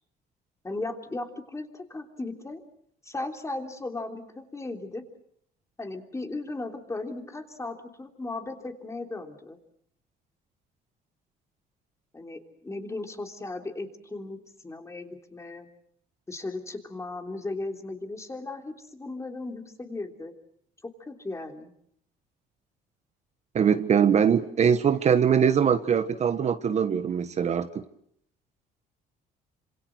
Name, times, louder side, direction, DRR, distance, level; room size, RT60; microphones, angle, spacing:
voice 1, 0.6-2.6 3.0-5.0 5.8-9.6 12.1-15.7 16.3-20.3 20.8-21.7, left 2 dB, 15° left, 4 dB, 3.3 m, -36 dB
voice 2, 23.5-27.8, right 7 dB, 40° right, 10 dB, 1.2 m, -22 dB
27.0 x 26.5 x 6.3 m, 0.70 s
cardioid pair, 110°, 17 cm